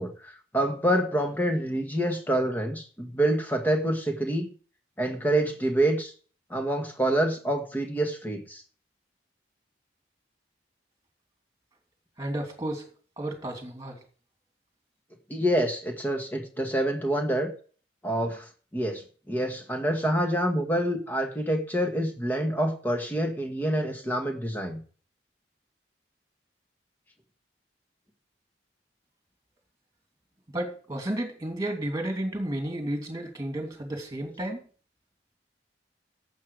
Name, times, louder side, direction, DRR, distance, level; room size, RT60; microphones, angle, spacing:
voice 1, 0.0-4.5 5.0-6.1 6.5-8.6 15.3-17.5 18.0-24.8, right 1 dB, 10° left, 3 dB, 1.7 m, -27 dB
voice 2, 12.2-12.9 13.2-14.0 30.5-34.6, right 1 dB, 20° right, 3 dB, 2.7 m, -32 dB
11.5 x 7.9 x 4.8 m, 0.41 s
head